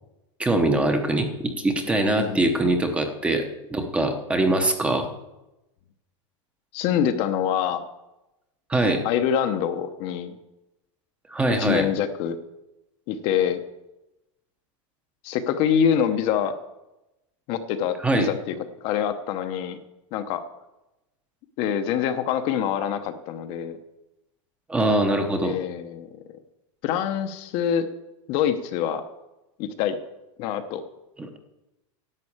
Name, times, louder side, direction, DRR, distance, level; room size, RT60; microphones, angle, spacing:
voice 1, 0.4-5.1 8.7-9.0 11.3-11.9 18.0-18.3 24.7-25.6 31.2-31.3, right 1 dB, 5° right, 6 dB, 0.8 m, -23 dB
voice 2, 6.7-7.8 9.0-10.4 11.6-12.4 13.1-13.6 15.2-16.5 17.5-18.5 18.8-19.8 20.1-20.4 21.6-23.8 25.4-26.1 26.8-27.9 28.3-29.0 29.6-30.0 30.4-30.8, left 8 dB, 35° left, 8 dB, 0.7 m, -25 dB
11.0 x 7.6 x 8.6 m, 0.96 s
supercardioid pair, 170°, 17 cm